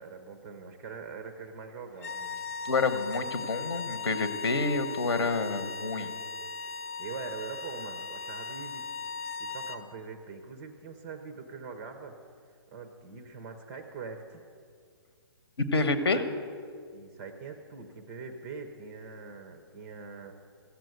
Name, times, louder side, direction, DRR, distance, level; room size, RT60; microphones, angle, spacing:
voice 1, 0.0-2.5 7.0-8.9 9.4-12.2 12.7-14.4 16.0-16.3 16.9-20.3, right 5 dB, 10° right, 6 dB, 0.4 m, -43 dB
sound 1, 1.9-9.8, left 4 dB, 35° left, 0.7 m, -38 dB
voice 2, 2.6-6.1 15.6-16.2, left 3 dB, 70° left, 10 dB, 1.2 m, -28 dB
14.5 x 7.5 x 9.2 m, 2.2 s
hypercardioid pair, 175°, 14 cm